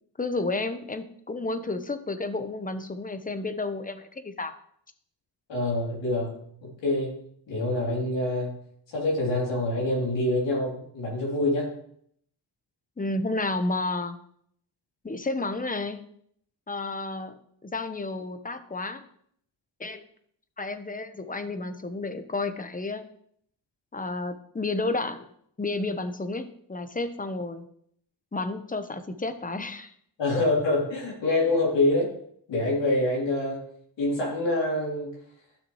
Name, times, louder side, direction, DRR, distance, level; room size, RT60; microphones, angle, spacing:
voice 1, 0.2-4.5 13.0-14.2 15.0-16.0 16.7-17.3 17.6-19.0 19.8-20.0 20.6-23.0 23.9-25.3 25.6-27.6 28.3-29.9, left 2 dB, 20° left, 10 dB, 1.0 m, -31 dB
voice 2, 5.5-7.2 7.5-8.6 8.9-11.7 30.2-32.1 32.5-33.6 34.0-35.2, left 2 dB, 85° left, -4 dB, 3.4 m, -26 dB
12.5 x 6.1 x 3.2 m, 0.66 s
cardioid pair, 60°, 43 cm